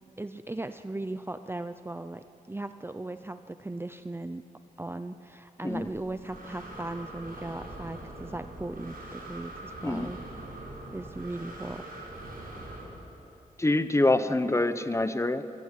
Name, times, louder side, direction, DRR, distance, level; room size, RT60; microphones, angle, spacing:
voice 1, 0.2-4.4 4.8-10.2 10.9-11.8, right 2 dB, 15° right, 10 dB, 0.6 m, -37 dB
Breathing, 5.7-12.8, right 1 dB, 85° right, 6.8 m, -43 dB
voice 2, 13.6-15.4, left 2 dB, 20° left, 11 dB, 0.9 m, -25 dB
25.5 x 17.0 x 8.3 m, 2.9 s
wide cardioid pair, 100°, 15 cm